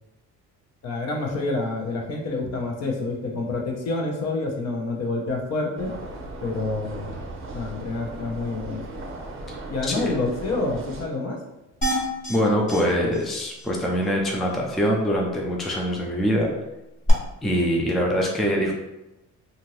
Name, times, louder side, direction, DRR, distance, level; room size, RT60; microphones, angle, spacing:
voice 1, 0.8-5.9 6.4-7.1 7.5-8.8 9.7-11.4, left 3 dB, 55° left, 0 dB, 0.7 m, -28 dB
sound 1, 5.8-11.0, right 2 dB, 40° right, 0.6 m, -37 dB
sound 2, 11.8-12.4 12.7-12.8 13.1-13.2 13.6-13.7 17.1-17.2, equal, 25° left, 1.2 m, -26 dB
voice 2, 12.3-16.5 17.4-18.7, equal, ahead, -1 dB, 0.3 m, -23 dB
2.7 x 2.5 x 3.0 m, 0.97 s
cardioid pair, 110°, 31 cm